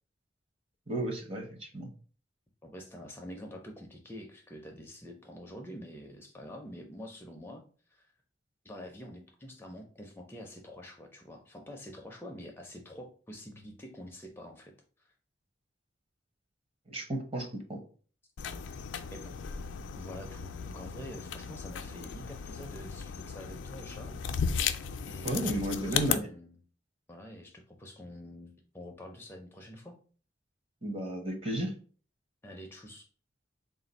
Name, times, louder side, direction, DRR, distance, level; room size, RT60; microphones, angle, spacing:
voice 1, 0.9-1.9 16.9-17.8 25.2-26.3 30.8-31.7, right 1 dB, 30° right, 4 dB, 0.7 m, -33 dB
voice 2, 2.6-8.1 8.6-14.7 15.0-15.1 19.1-19.4 19.9-24.2 25.0-26.6 27.1-30.0 32.4-33.1, equal, 10° left, 2 dB, 0.4 m, -47 dB
sound 1, 18.4-26.2, left 7 dB, 85° left, 0.4 m, -36 dB
3.6 x 2.5 x 3.9 m, 0.41 s
head